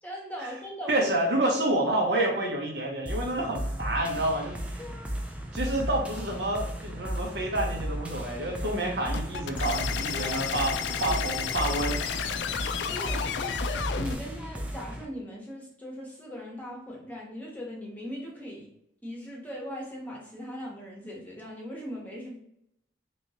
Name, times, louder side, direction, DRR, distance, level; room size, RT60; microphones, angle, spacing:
voice 1, 0.0-0.9 4.8-5.1 10.1-10.4 11.0-11.2 12.8-18.7 19.0-22.4, equal, 10° left, -3 dB, 0.8 m, -40 dB
voice 2, 0.9-4.8 5.5-12.0, right 1 dB, 80° right, 0 dB, 0.9 m, -28 dB
sound 1, 3.1-15.1, right 1 dB, 5° right, 0.3 m, -35 dB
sound 2, 9.1-14.2, left 7 dB, 80° left, 0.3 m, -32 dB
3.1 x 2.8 x 2.7 m, 0.77 s
head